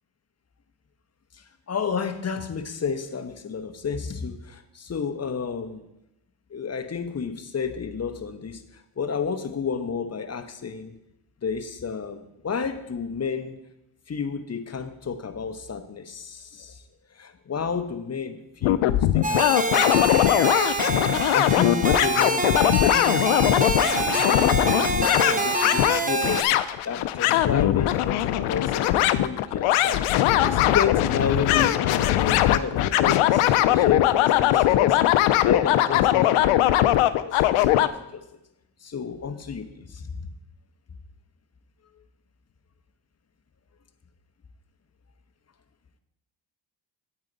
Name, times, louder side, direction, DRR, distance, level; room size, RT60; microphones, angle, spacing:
voice 1, 1.4-5.9 6.5-8.6 9.0-10.9 11.4-13.6 14.1-16.8 17.2-21.0 21.3-26.5 26.8-37.0 37.2-37.4 37.8-38.2 38.8-40.3, left 6 dB, 30° left, 7 dB, 1.0 m, -31 dB
sound 1, 18.6-37.9, left 13 dB, 90° left, 0.6 m, -21 dB
sound 2, 19.2-26.4, right 2 dB, 15° right, 0.9 m, -26 dB
9.2 x 8.8 x 4.0 m, 0.87 s
cardioid pair, 75°, 48 cm